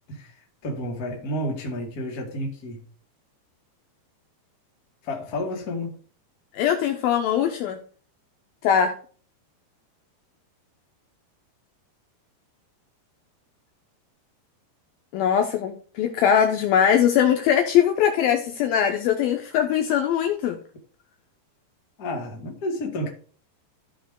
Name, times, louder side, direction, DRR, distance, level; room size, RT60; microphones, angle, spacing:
voice 1, 0.6-2.8 5.0-6.0 22.0-23.1, left 1 dB, 35° left, 1.5 m, -30 dB
voice 2, 6.5-7.8 8.6-8.9 15.1-20.6, left 9 dB, 75° left, 2.3 m, -21 dB
13.5 x 5.0 x 3.7 m
omnidirectional pair, 4.9 m